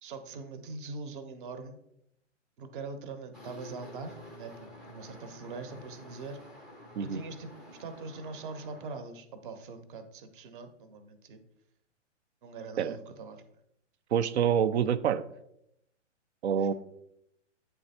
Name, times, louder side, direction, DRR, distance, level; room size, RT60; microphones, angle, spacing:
voice 1, 0.0-1.8 2.6-6.4 7.0-7.5 7.8-11.4 12.4-13.4 16.6-16.7, right 4 dB, 45° right, 9 dB, 0.9 m, -42 dB
sound 1, 3.3-9.0, left 1 dB, ahead, 0.4 m, -50 dB
voice 2, 14.1-15.2 16.4-16.7, right 8 dB, 60° right, 14 dB, 0.5 m, -26 dB
8.5 x 3.4 x 4.2 m, 0.78 s
hypercardioid pair, 130°, 37 cm